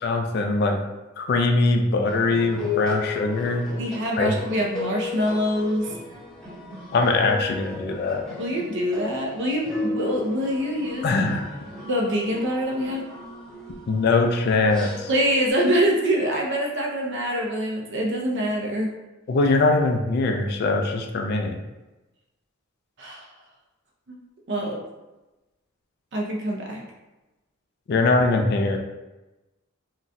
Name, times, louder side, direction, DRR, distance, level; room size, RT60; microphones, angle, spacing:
voice 1, 0.0-0.8 1.2-3.7 4.2-4.3 6.9-8.2 11.0-11.5 13.9-15.1 19.3-21.6 27.9-28.8, left 3 dB, 50° left, 4 dB, 0.3 m, -22 dB
sound 1, 2.1-15.5, left 3 dB, 5° left, 0.7 m, -35 dB
voice 2, 3.8-5.9 8.4-11.1 11.9-13.0 15.1-18.9 23.0-23.3 24.1-24.2 24.5-24.8 26.1-26.8, equal, 55° right, 0 dB, 0.5 m, -25 dB
3.9 x 2.2 x 2.5 m, 1.0 s
head